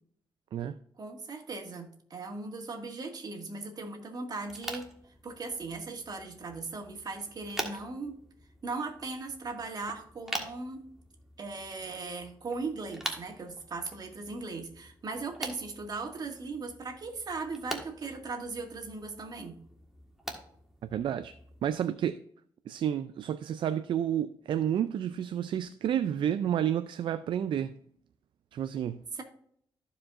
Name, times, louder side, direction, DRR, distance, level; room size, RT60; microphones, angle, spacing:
voice 1, 1.0-4.9 5.2-8.2 8.6-10.9 11.4-19.6 29.1-29.2, right 3 dB, 50° right, 1.9 m, -38 dB
sound 1, 4.4-21.7, right 1 dB, 5° right, 1.5 m, -44 dB
voice 2, 20.9-21.3 21.6-22.2 22.7-27.8 28.5-29.0, right 10 dB, 70° right, 0.4 m, -30 dB
14.5 x 5.0 x 2.5 m
cardioid pair, 85°, 9 cm